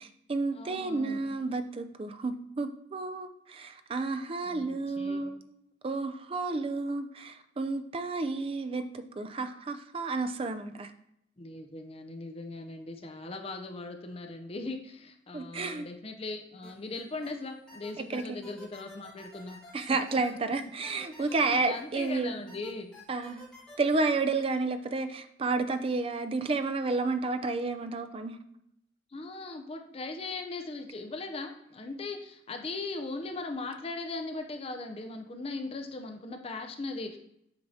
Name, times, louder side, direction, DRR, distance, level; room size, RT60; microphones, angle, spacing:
voice 1, 0.0-5.4 5.8-10.9 15.3-15.9 18.0-18.4 19.7-22.3 23.1-23.4 23.8-28.4, right 3 dB, 30° right, 9 dB, 0.4 m, -31 dB
voice 2, 0.5-1.2 4.4-5.2 11.4-19.6 20.1-20.2 21.2-22.9 29.1-37.2, left 3 dB, 30° left, 5 dB, 0.5 m, -39 dB
sound 1, 16.6-17.3 17.7-22.1 22.5-23.9, left 1 dB, 5° left, 1.9 m, -50 dB
7.9 x 4.6 x 2.7 m, 0.78 s
head